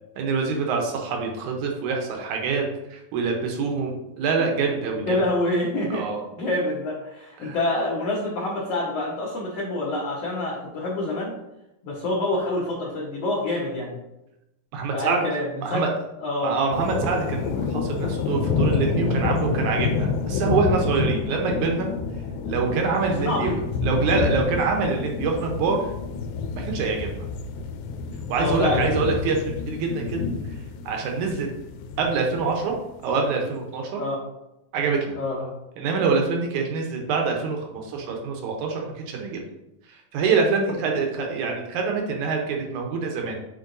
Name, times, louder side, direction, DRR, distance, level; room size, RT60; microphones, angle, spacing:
voice 1, 0.2-5.2 5.9-6.2 7.4-7.6 14.7-15.2 15.6-15.9 16.4-21.9 22.5-23.5 23.8-25.9 26.6-27.3 28.3-30.2 30.9-31.5 32.0-32.7 33.0-34.0 34.7-35.2 35.8-39.4 39.9-43.4, right 4 dB, 75° right, 1 dB, 1.9 m, -25 dB
voice 2, 5.1-6.0 6.3-11.3 11.8-14.0 14.9-15.5 15.7-15.8 16.2-16.6 23.2-23.6 24.0-24.2 28.4-28.9 34.0-34.2 35.2-35.5, left 1 dB, 65° left, -5 dB, 1.7 m, -26 dB
sound 1, 16.7-32.8, left 5 dB, 85° left, 2.4 m, -28 dB
8.2 x 4.5 x 2.6 m, 0.89 s
omnidirectional pair, 4.2 m